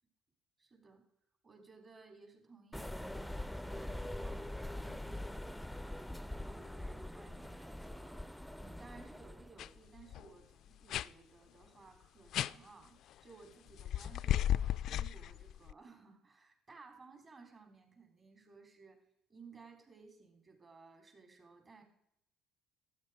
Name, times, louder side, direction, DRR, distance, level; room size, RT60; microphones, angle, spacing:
voice 1, 0.6-1.0 1.4-19.0 19.3-21.8, right 4 dB, 35° right, 4 dB, 3.8 m, -59 dB
sound 1, 2.7-9.7, left 1 dB, ahead, 0.5 m, -43 dB
sound 2, 9.6-9.7 10.0-10.3 10.9-11.1 12.3-12.5 13.8-15.7, left 11 dB, 65° left, 0.3 m, -34 dB
12.5 x 9.1 x 5.1 m, 0.78 s
hypercardioid pair, 70°, 0 cm